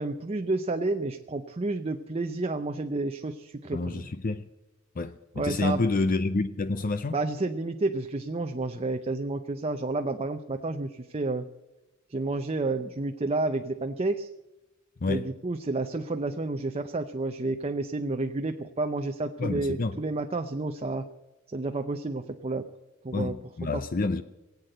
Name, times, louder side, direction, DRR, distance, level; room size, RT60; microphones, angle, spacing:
voice 1, 0.0-4.1 5.4-5.8 7.1-11.5 12.1-14.3 15.1-21.1 21.5-22.7 23.0-23.3 23.7-23.8, right 2 dB, 30° right, 0.6 m, -30 dB
voice 2, 3.7-4.5 5.0-7.2 15.0-15.3 19.4-20.0 23.1-24.2, left 3 dB, 40° left, 0.5 m, -28 dB
20.5 x 8.3 x 7.8 m
head